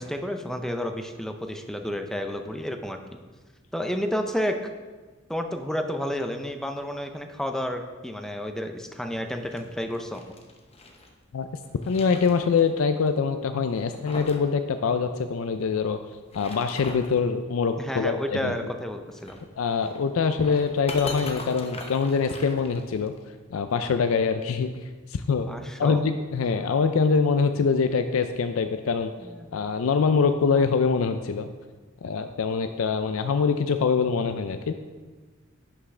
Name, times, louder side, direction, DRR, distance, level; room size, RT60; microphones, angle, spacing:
voice 1, 0.0-3.0 3.7-4.5 5.3-10.2 17.8-19.4 25.5-26.0 29.2-29.7, equal, ahead, 5 dB, 0.5 m, -31 dB
sound 1, 9.3-11.1 11.5-12.8 13.1-13.2 13.7-14.5 14.7-14.8 16.1-17.2 19.1-23.2, left 2 dB, 30° left, 0.8 m, -40 dB
voice 2, 11.9-16.0 16.3-18.5 19.6-23.1 23.5-24.7 25.1-25.5 25.8-29.1 29.5-31.5 32.0-34.7, left 5 dB, 85° left, 8 dB, 0.4 m, -24 dB
11.0 x 5.9 x 3.3 m, 1.3 s
head